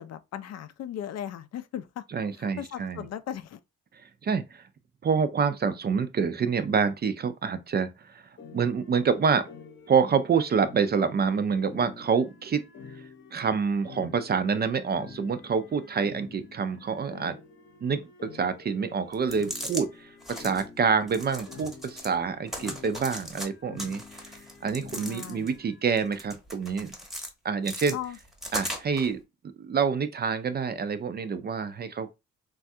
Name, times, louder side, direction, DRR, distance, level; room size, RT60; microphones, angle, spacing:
voice 1, 0.0-2.0 2.4-3.6 24.9-25.5 27.9-28.2, left 10 dB, 60° left, 0.4 m, -37 dB
voice 2, 2.1-3.1 4.2-4.6 5.0-8.2 8.5-9.5 9.9-12.6 13.3-17.4 17.8-24.0 24.6-26.9 27.4-28.0 28.5-29.2 29.6-32.1, right 6 dB, 35° right, 0.4 m, -27 dB
sound 1, 8.4-25.8, left 4 dB, 40° left, 0.8 m, -48 dB
sound 2, 19.1-19.8 20.2-20.6 21.1-22.1 22.5-23.5 23.8-25.6 26.0-27.3 27.6-29.1, equal, ahead, 0.8 m, -38 dB
3.3 x 2.3 x 2.6 m
cardioid pair, 90°, 30 cm